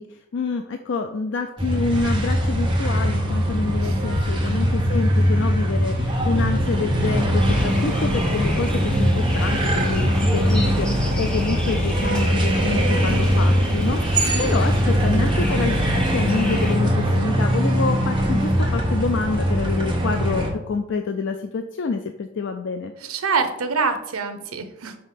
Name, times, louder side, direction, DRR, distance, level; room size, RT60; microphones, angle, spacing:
voice 1, 0.0-22.9, left 4 dB, 60° left, 6 dB, 0.4 m, -27 dB
sound 1, 1.6-20.5, equal, 25° right, 1.1 m, -21 dB
sound 2, 7.4-16.8, equal, 5° left, 0.8 m, -32 dB
voice 2, 14.2-14.6 23.0-25.0, right 4 dB, 90° right, 8 dB, 0.8 m, -26 dB
5.4 x 3.6 x 5.8 m, 0.81 s
head